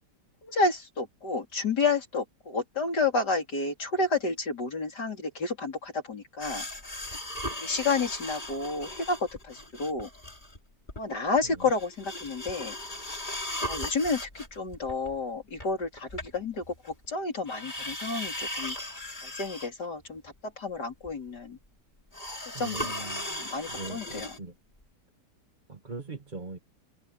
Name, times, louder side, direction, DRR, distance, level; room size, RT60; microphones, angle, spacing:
voice 1, 0.4-6.7 7.6-10.1 11.0-12.7 13.6-18.9 19.2-21.6 22.6-24.3, left 3 dB, 70° left, 4.5 m, -30 dB
sound 1, 6.4-10.6 10.9-11.0 11.4-17.1 17.5-19.9 20.2-20.3 21.1-21.2 22.1-24.4 24.8-24.9, left 1 dB, 25° left, 4.5 m, -37 dB
voice 2, 22.5-23.3 23.7-24.5 25.7-26.6, right 3 dB, 25° right, 1.9 m, -40 dB
open air
omnidirectional pair, 1.8 m